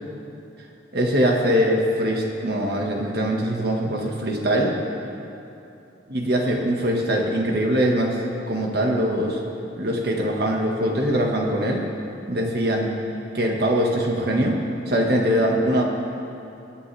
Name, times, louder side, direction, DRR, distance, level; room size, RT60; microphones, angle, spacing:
voice 1, 0.9-4.7 6.1-8.2 8.5-9.4 9.8-11.8 12.3-12.9 13.3-14.6 14.9-15.8, equal, 60° right, 0 dB, 1.6 m, -22 dB
23.5 x 8.8 x 3.4 m, 2.8 s
head